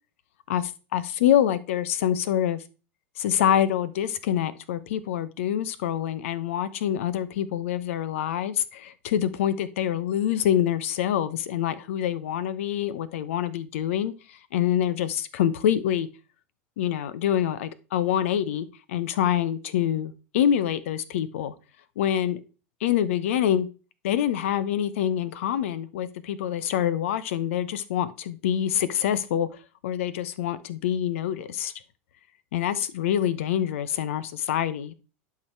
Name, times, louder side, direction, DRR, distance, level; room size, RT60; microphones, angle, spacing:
voice 1, 0.5-2.6 3.2-16.1 16.8-21.5 22.0-22.4 22.8-23.7 24.0-29.5 29.8-31.7 32.5-34.9, left 10 dB, 65° left, 0.9 m, -26 dB
11.5 x 4.8 x 4.7 m
figure-of-eight pair, 85°, 7 cm